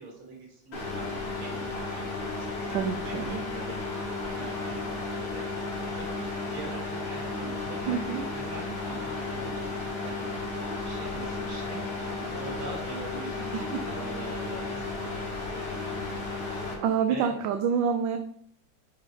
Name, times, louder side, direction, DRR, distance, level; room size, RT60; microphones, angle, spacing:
voice 1, 0.0-2.1 2.5-8.0 8.3-9.6 10.0-17.3, right 3 dB, 90° right, -2 dB, 3.0 m, -44 dB
sound 1, 0.7-16.7, left 3 dB, 50° left, 2.6 m, -34 dB
voice 2, 2.7-3.4 7.9-8.2 13.5-13.8 16.8-18.2, right 7 dB, 75° right, 7 dB, 1.2 m, -27 dB
6.5 x 5.3 x 4.9 m, 0.66 s
omnidirectional pair, 2.3 m